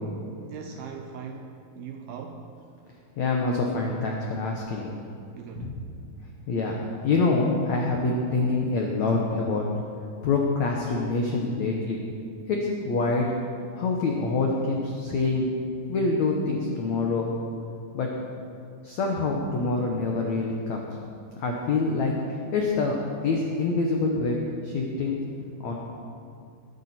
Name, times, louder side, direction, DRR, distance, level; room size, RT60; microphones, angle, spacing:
voice 1, 0.4-2.5 5.3-5.8, right 7 dB, 85° right, 4 dB, 2.2 m, -40 dB
voice 2, 3.2-4.9 5.6-5.8 6.5-6.8 7.0-9.6 10.2-12.0 12.5-13.3 13.7-15.5 15.9-17.3 17.9-18.1 18.8-20.9 21.4-22.1 22.5-24.4 24.6-25.2 25.6-25.7, left 3 dB, 85° left, -1 dB, 1.6 m, -26 dB
21.0 x 10.5 x 4.4 m, 2.5 s
omnidirectional pair, 5.0 m